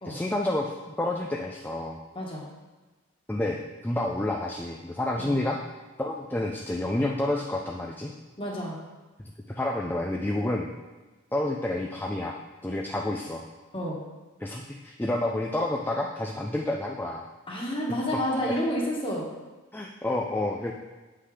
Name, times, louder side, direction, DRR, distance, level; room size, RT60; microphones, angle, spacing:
voice 1, 0.0-2.0 3.3-5.6 6.0-8.1 9.5-10.7 11.3-12.4 12.6-13.4 14.4-17.2 19.7-20.7, left 1 dB, 10° left, 0 dB, 0.5 m, -29 dB
voice 2, 2.1-2.4 5.2-5.4 8.4-8.8 13.7-14.0 17.5-19.2, equal, 25° left, -3 dB, 1.7 m, -29 dB
8.1 x 5.7 x 5.0 m, 1.3 s
head